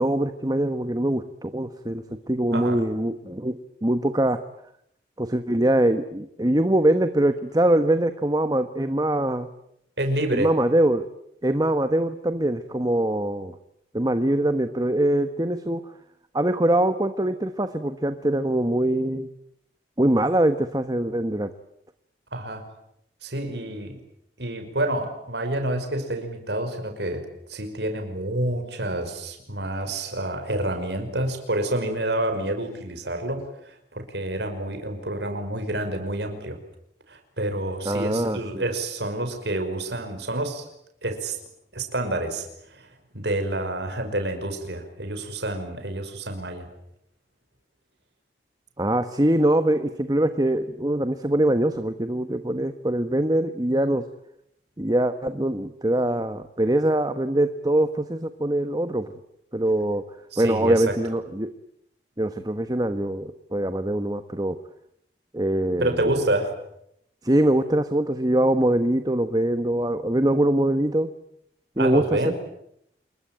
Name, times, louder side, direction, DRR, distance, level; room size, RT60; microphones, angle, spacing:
voice 1, 0.0-4.4 5.2-9.5 10.3-11.1 11.4-13.6 13.9-15.8 16.3-19.3 20.0-21.5 37.8-38.4 48.8-54.0 54.8-59.1 59.5-60.0 60.4-61.5 62.2-64.6 65.3-65.9 67.2-71.1 71.8-72.3, right 1 dB, 20° right, 9 dB, 1.3 m, -23 dB
voice 2, 2.5-2.8 10.0-10.5 22.3-22.7 23.2-24.0 24.4-36.6 37.1-40.6 41.0-41.4 41.7-46.7 60.3-61.0 65.8-66.6 71.8-72.3, right 1 dB, 75° right, 6 dB, 5.6 m, -28 dB
28.0 x 22.0 x 9.3 m, 0.76 s
head